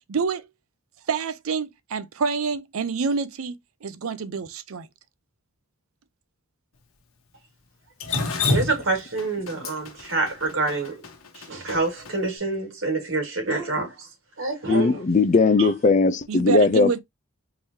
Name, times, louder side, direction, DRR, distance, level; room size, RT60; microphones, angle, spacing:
voice 1, 0.1-0.5 1.1-3.5 3.8-4.9 16.3-17.0, right 5 dB, 85° right, 0.5 m, -27 dB
Drip, 8.0-12.1, left 3 dB, 85° left, 1.0 m, -27 dB
voice 2, 8.5-11.0 11.3-13.9 14.4-15.0 15.6-15.7, right 3 dB, 70° right, 2.2 m, -27 dB
voice 3, 14.7-17.0, left 3 dB, 35° left, 0.4 m, -19 dB
3.8 x 3.1 x 2.7 m
head